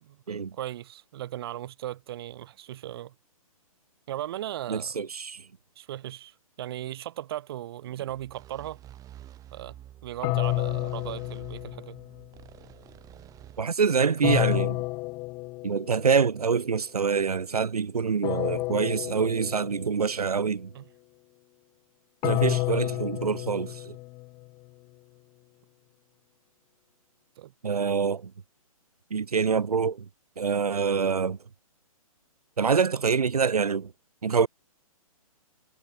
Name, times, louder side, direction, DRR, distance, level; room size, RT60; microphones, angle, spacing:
voice 1, 0.0-3.1 4.1-5.0 5.8-8.8 9.5-12.0 20.7-20.8 27.4-27.5, right 13 dB, 40° right, 0.6 m, -37 dB
voice 2, 4.7-5.4 13.6-14.8 15.6-20.7 22.2-24.0 27.6-28.3 29.1-30.0 30.4-31.4 32.6-33.9 34.2-34.5, right 6 dB, 85° right, 0.5 m, -25 dB
sound 1, 8.1-13.6, right 12 dB, 20° right, 2.3 m, -49 dB
sound 2, 10.2-12.3 14.2-16.1 18.2-20.1 22.2-24.4, left 23 dB, 15° left, 0.4 m, -30 dB
figure-of-eight pair, 125°, 19 cm